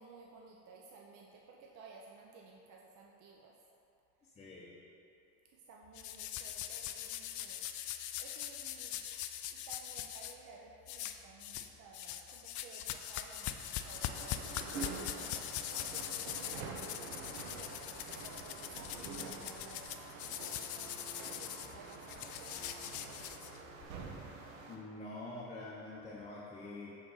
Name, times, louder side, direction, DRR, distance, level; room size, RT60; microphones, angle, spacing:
voice 1, 0.0-3.5 5.5-9.0 9.5-23.4, right 4 dB, 50° right, -1 dB, 0.6 m, -56 dB
voice 2, 4.4-4.8 24.7-27.0, left 2 dB, 15° left, -6 dB, 0.7 m, -46 dB
sound 1, 5.9-10.3 10.9-11.7 11.9-23.8, left 11 dB, 50° left, 0.4 m, -42 dB
sound 2, 13.8-24.8, right 4 dB, 85° right, 0.8 m, -47 dB
6.7 x 3.9 x 3.9 m, 2.8 s
supercardioid pair, 95°, 38 cm